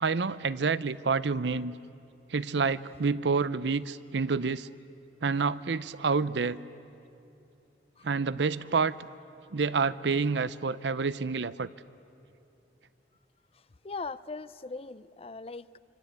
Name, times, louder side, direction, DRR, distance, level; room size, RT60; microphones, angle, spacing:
voice 1, 0.0-1.7 2.3-4.7 5.2-6.6 8.0-9.0 9.5-11.7, right 4 dB, 80° right, 16 dB, 0.6 m, -28 dB
voice 2, 13.8-15.8, left 3 dB, 35° left, 16 dB, 0.5 m, -40 dB
25.5 x 25.5 x 8.3 m, 2.7 s
head